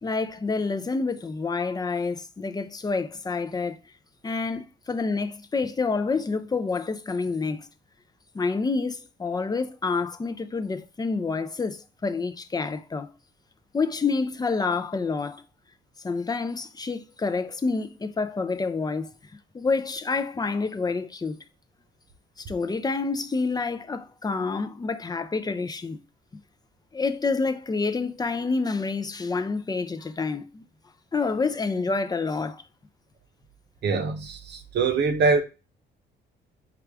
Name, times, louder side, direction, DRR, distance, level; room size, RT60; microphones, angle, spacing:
voice 1, 0.0-3.8 4.2-7.7 8.3-13.1 13.7-15.4 16.0-19.1 19.5-21.4 22.4-26.0 26.9-30.6 31.1-32.6, left 4 dB, 20° left, 0.4 m, -28 dB
voice 2, 33.8-35.4, right 4 dB, 60° right, 0.7 m, -23 dB
4.7 x 2.4 x 3.3 m
cardioid pair, 90°, 20 cm